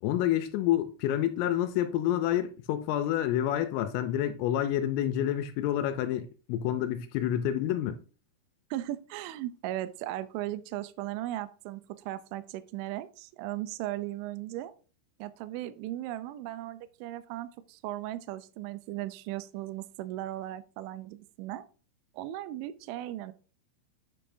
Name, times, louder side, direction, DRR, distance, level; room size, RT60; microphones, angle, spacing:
voice 1, 0.0-8.0, left 11 dB, 85° left, 3.1 m, -28 dB
voice 2, 8.7-14.7 15.2-21.7 22.1-23.3, right 14 dB, 85° right, 2.7 m, -37 dB
9.4 x 6.9 x 2.6 m
omnidirectional pair, 6.0 m